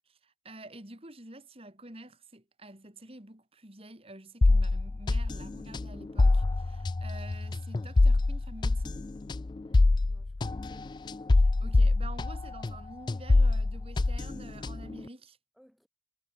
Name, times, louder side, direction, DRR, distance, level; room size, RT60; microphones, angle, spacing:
voice 1, 0.0-9.0 11.3-15.4, right 2 dB, 35° right, 3.9 m, -48 dB
sound 1, 4.4-12.8 13.1-15.0, left 2 dB, 25° left, 0.3 m, -25 dB
voice 2, 9.7-11.4 15.5-15.9, equal, ahead, 7.0 m, -64 dB
head